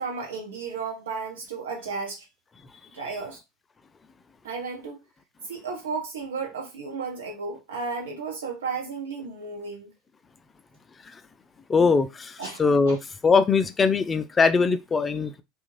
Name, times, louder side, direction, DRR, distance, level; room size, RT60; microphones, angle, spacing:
voice 1, 0.0-2.2 2.9-3.4 4.4-5.0 5.5-9.9 12.4-12.9, right 4 dB, 80° right, 1.0 m, -33 dB
voice 2, 11.7-13.0 13.2-15.4, left 4 dB, 25° left, 0.4 m, -21 dB
2.4 x 2.3 x 3.2 m
hypercardioid pair, 80°, 0 cm